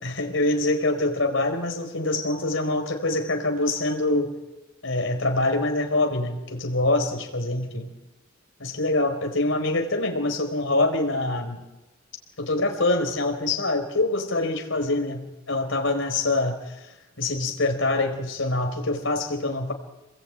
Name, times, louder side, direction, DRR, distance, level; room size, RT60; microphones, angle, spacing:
voice 1, 0.0-4.3 4.8-7.9 8.6-11.6 12.4-19.7, left 2 dB, 70° left, 5 dB, 4.8 m, -25 dB
28.5 x 21.0 x 9.2 m, 1.0 s
head